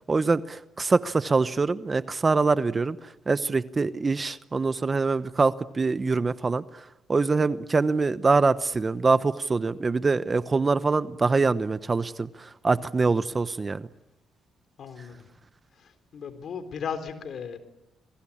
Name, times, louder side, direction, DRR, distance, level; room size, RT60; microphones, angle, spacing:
voice 1, 0.1-3.0 3.3-6.6 7.1-12.3 12.6-13.9, right 4 dB, 30° right, 13 dB, 1.0 m, -24 dB
voice 2, 14.8-15.2 15.8-17.6, left 7 dB, 60° left, 9 dB, 4.1 m, -36 dB
29.5 x 22.5 x 8.7 m, 0.93 s
cardioid pair, 90°, 0 cm